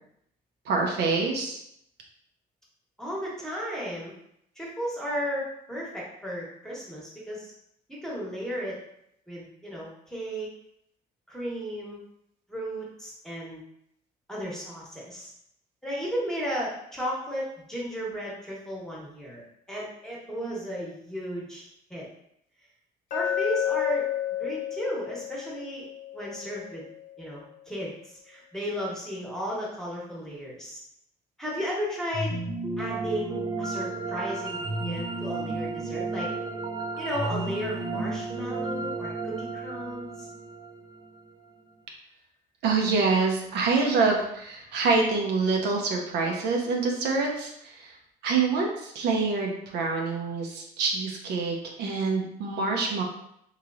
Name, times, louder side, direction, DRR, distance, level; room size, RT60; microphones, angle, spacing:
voice 1, 0.7-1.6 42.6-47.9 48.2-53.0, right 4 dB, 80° right, 1 dB, 0.6 m, -26 dB
voice 2, 3.0-4.1 4.6-7.5 8.0-8.8 9.3-10.5 11.3-12.0 12.5-13.6 14.3-15.3 15.8-19.4 19.7-21.6 21.9-22.1 23.1-24.1 24.4-25.9 26.1-26.8 27.2-30.8 31.4-32.4 32.8-36.3 37.0-40.3, equal, 5° left, -5 dB, 1.0 m, -34 dB
Glass, 23.1-27.2, left 10 dB, 55° left, 0.8 m, -31 dB
sound 1, 32.1-41.3, right 3 dB, 25° right, 0.4 m, -33 dB
3.1 x 2.8 x 2.4 m, 0.74 s
cardioid pair, 110°, 17 cm